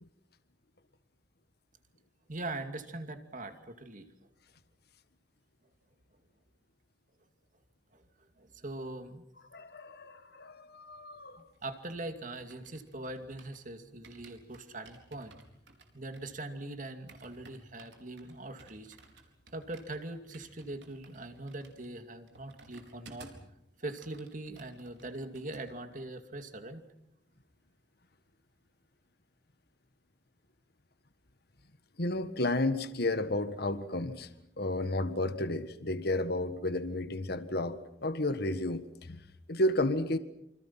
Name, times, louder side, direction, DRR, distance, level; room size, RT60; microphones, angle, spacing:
voice 1, 2.3-4.1 7.9-8.0 8.4-9.2 11.6-15.3 15.9-19.0 19.5-23.3 23.8-26.8, right 2 dB, 45° right, 7 dB, 2.5 m, -42 dB
voice 2, 9.5-11.4 32.0-34.3 34.6-39.2 39.5-40.2, left 1 dB, 60° left, 11 dB, 1.6 m, -32 dB
sound 1, 11.4-13.7 14.0-23.5 23.8-25.6 25.9-26.2, right 3 dB, 75° right, 4.4 m, -57 dB
28.0 x 26.0 x 5.9 m, 0.80 s
head